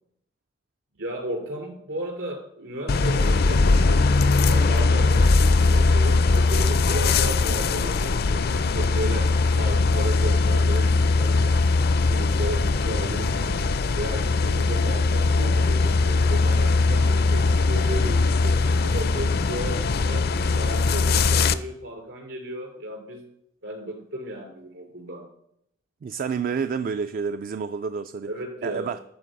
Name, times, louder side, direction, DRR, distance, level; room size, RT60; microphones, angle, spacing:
voice 1, 1.0-9.3 9.5-11.7 12.1-13.7 13.9-20.2 20.6-23.2 23.6-25.2 28.2-28.9, right 1 dB, 70° right, 2.9 m, -34 dB
sound 1, 2.9-21.6, left 3 dB, 55° left, 0.5 m, -20 dB
voice 2, 26.0-28.3 28.6-29.0, right 6 dB, 45° right, 0.3 m, -29 dB
13.0 x 4.6 x 6.3 m
head